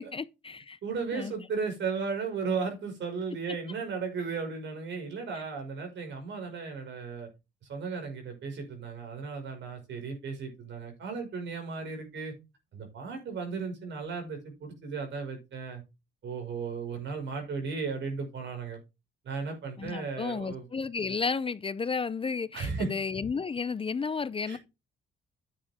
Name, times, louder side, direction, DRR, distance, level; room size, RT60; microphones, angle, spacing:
voice 1, 0.0-0.8 1.1-1.3 19.8-24.6, left 5 dB, 25° left, 0.6 m, -32 dB
voice 2, 0.8-7.3 7.7-12.3 12.7-15.8 16.2-18.8 19.2-20.6 22.5-22.9 24.5-24.6, right 5 dB, 65° right, 5.7 m, -35 dB
10.0 x 8.1 x 3.7 m
cardioid pair, 90°, 20 cm